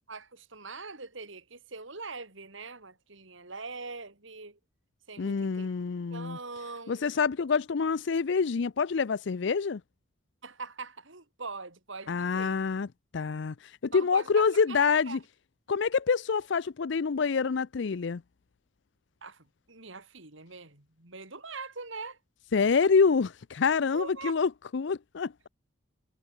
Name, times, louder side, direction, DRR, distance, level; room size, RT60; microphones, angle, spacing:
voice 1, 0.1-4.6 5.1-5.7 6.1-7.1 10.4-12.6 13.9-15.2 19.2-22.2 23.9-24.3, right 4 dB, 65° right, 3.4 m, -42 dB
voice 2, 5.2-6.4 6.9-9.8 12.1-12.9 13.1-15.2 15.7-18.2 22.5-25.5, left 5 dB, 60° left, 0.5 m, -27 dB
head